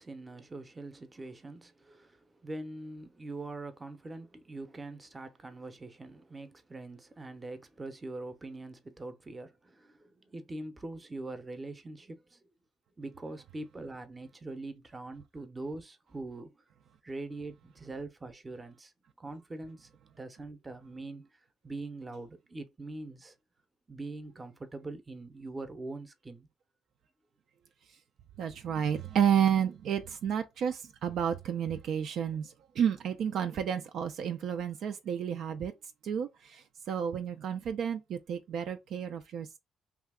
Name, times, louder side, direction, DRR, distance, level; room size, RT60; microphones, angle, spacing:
voice 1, 0.0-12.4 13.0-16.6 17.0-18.9 19.2-19.9 20.2-21.3 21.6-23.3 23.9-26.5, right 2 dB, 25° right, 0.6 m, -43 dB
voice 2, 28.4-35.7 36.0-39.6, right 8 dB, 65° right, 0.4 m, -31 dB
2.7 x 2.3 x 3.5 m
cardioid pair, 85°, 0 cm